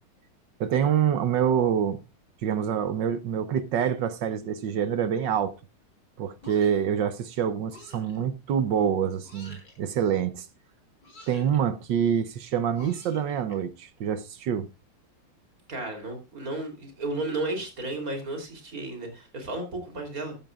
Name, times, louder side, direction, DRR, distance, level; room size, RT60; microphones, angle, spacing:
voice 1, 0.6-2.0 2.4-5.5 6.2-10.5 11.3-14.7, right 8 dB, 65° right, 1.3 m, -26 dB
sound 1, 6.4-6.9 7.7-8.2 9.2-9.8 11.0-11.6 12.7-13.6, left 2 dB, 50° left, 4.9 m, -48 dB
voice 2, 15.7-20.4, right 2 dB, 40° right, 3.7 m, -33 dB
15.0 x 12.5 x 2.4 m
omnidirectional pair, 2.4 m